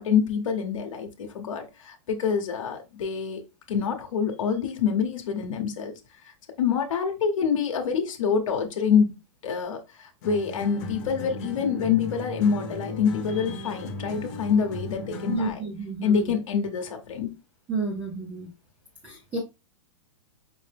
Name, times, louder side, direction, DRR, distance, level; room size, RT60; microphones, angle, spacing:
voice 1, 0.0-5.9 6.2-9.1 9.4-15.6 16.0-17.3, left 6 dB, 90° left, 0.9 m, -26 dB
sound 1, 10.2-15.6, left 2 dB, 30° left, 0.8 m, -37 dB
voice 2, 15.3-16.3 17.7-18.5 19.0-19.4, right 3 dB, 10° right, 0.4 m, -31 dB
5.2 x 2.0 x 3.3 m
supercardioid pair, 175°, 16 cm